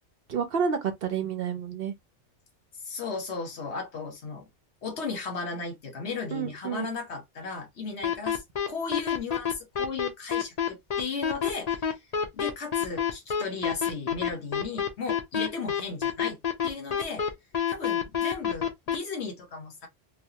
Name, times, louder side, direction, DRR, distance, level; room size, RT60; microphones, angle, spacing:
voice 1, 0.3-1.9 6.3-6.9, right 6 dB, 60° right, 0.8 m, -29 dB
voice 2, 2.8-4.4 4.8-8.4 8.7-12.0 12.3-16.4 16.6-17.2 17.7-19.9, left 4 dB, 70° left, 1.2 m, -35 dB
sound 1, 8.0-19.0, left 8 dB, 40° left, 0.7 m, -27 dB
3.3 x 2.2 x 2.7 m
omnidirectional pair, 1.2 m